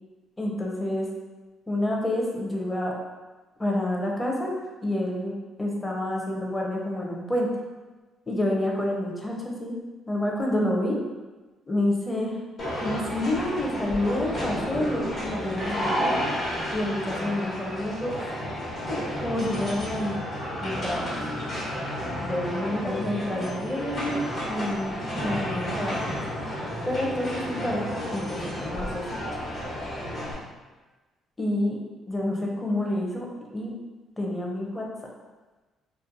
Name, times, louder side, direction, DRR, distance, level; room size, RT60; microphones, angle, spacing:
voice 1, 0.4-1.1 1.7-2.9 3.6-4.6 4.8-7.5 8.3-9.8 10.1-11.0 11.7-12.4 12.8-16.1 16.7-18.4 18.7-20.2 20.6-21.1 22.2-24.2 24.5-25.0 25.2-26.2 26.8-29.0 29.3-29.5 31.4-31.8 32.1-33.3 33.5-33.7 34.2-34.9, left 1 dB, 20° left, -1 dB, 0.7 m, -28 dB
sound 1, 12.6-30.3, equal, 55° left, 1.2 m, -31 dB
2.5 x 2.4 x 2.6 m, 1.2 s
supercardioid pair, 65°, 0 cm